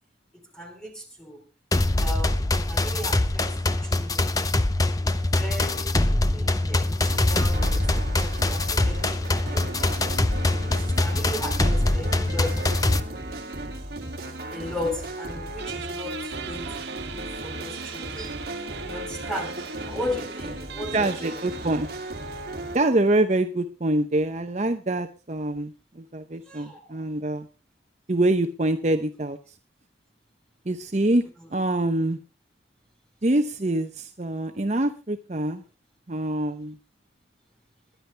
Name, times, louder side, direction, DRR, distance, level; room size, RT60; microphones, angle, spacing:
voice 1, 0.5-1.4 2.0-4.3 4.9-10.0 10.6-12.6 14.5-18.4 18.8-21.4 26.5-27.1, left 1 dB, 5° left, 3 dB, 3.3 m, -37 dB
sound 1, 1.7-13.0, left 2 dB, 20° left, 0.7 m, -23 dB
sound 2, 7.0-22.8, right 2 dB, 55° right, 2.7 m, -36 dB
Guitar, 15.6-22.8, right 6 dB, 75° right, 1.7 m, -41 dB
voice 2, 20.9-21.9 22.7-27.5 28.1-29.4 30.7-31.3 31.5-32.2 33.2-35.6 36.1-36.8, right 1 dB, 40° right, 7 dB, 0.8 m, -25 dB
22.0 x 10.5 x 3.4 m, 0.31 s
head